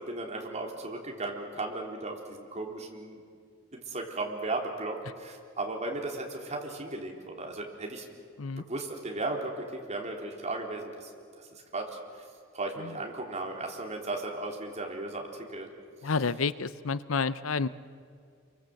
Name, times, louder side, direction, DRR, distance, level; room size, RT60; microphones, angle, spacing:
voice 1, 0.0-3.2 3.7-8.1 8.6-11.1 11.4-11.5 11.7-11.9 12.5-15.7, right 2 dB, 35° right, 1 dB, 3.7 m, -36 dB
voice 2, 16.0-17.7, left 4 dB, 75° left, 15 dB, 0.7 m, -30 dB
27.5 x 24.0 x 7.8 m, 2.2 s
head